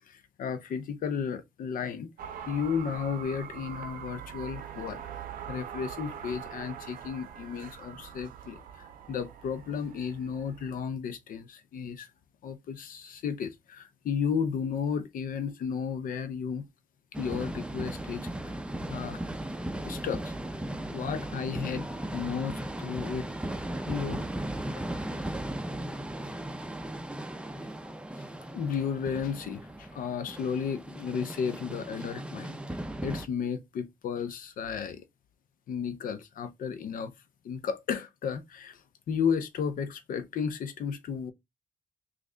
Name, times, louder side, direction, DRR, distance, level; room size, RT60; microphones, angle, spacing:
voice 1, 0.0-2.1 2.5-5.0 5.5-12.1 12.4-16.7 17.1-18.3 18.9-19.2 19.8-20.3 20.9-21.9 22.1-23.3 23.9-24.2 24.6-24.9 28.2-28.3 28.5-35.0 35.7-37.1 37.4-41.3, left 6 dB, 80° left, 0.6 m, -33 dB
sound 1, 2.2-10.8, right 8 dB, 90° right, 0.6 m, -43 dB
sound 2, 17.1-33.3, right 1 dB, 5° right, 0.5 m, -37 dB
3.1 x 2.5 x 3.7 m
cardioid pair, 60°, 14 cm